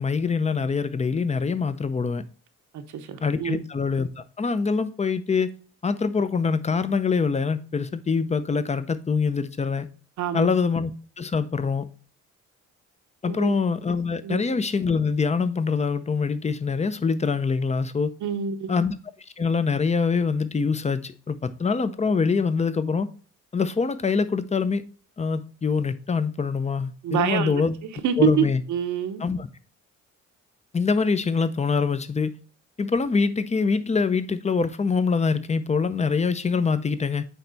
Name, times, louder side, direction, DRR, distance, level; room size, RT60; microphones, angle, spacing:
voice 1, 0.0-2.2 3.2-5.5 5.8-9.9 10.3-10.9 11.2-11.8 13.2-18.1 18.7-18.9 19.4-23.1 23.5-24.8 25.2-27.7 28.2-28.6 29.2-29.5 30.7-32.3 32.8-37.2, left 5 dB, 20° left, 0.7 m, -24 dB
voice 2, 2.7-3.6 10.2-10.5 13.3-13.5 14.2-14.4 18.2-18.7 27.0-27.6 28.0-29.2, right 8 dB, 75° right, 1.0 m, -26 dB
9.0 x 3.3 x 4.0 m
cardioid pair, 90°, 30 cm